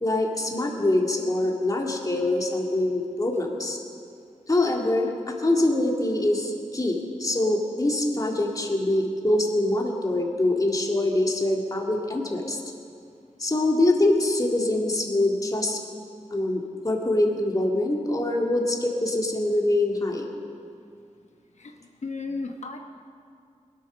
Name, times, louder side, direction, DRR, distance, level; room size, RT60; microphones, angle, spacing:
voice 1, 0.0-3.8 4.5-5.1 5.4-12.6 13.4-15.8 16.3-20.3, left 1 dB, 30° left, 0 dB, 2.2 m, -24 dB
voice 2, 22.0-22.8, left 3 dB, 65° left, 3 dB, 1.1 m, -33 dB
22.0 x 8.5 x 6.4 m, 2.4 s
wide cardioid pair, 75°, 13 cm